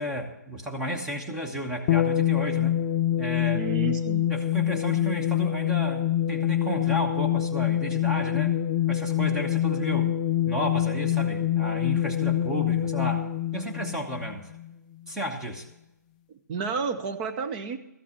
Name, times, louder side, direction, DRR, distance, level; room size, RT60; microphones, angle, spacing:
voice 1, 0.0-2.8 3.2-3.6 4.3-8.6 8.9-10.1 10.5-13.2 13.5-14.5 15.1-15.7, equal, 5° right, 1 dB, 1.0 m, -33 dB
sound 1, 1.9-14.7, left 11 dB, 25° left, 0.3 m, -25 dB
voice 2, 3.5-4.3 16.5-17.8, right 5 dB, 25° right, 7 dB, 0.7 m, -31 dB
13.5 x 6.0 x 8.4 m, 0.88 s
figure-of-eight pair, 135°, 10 cm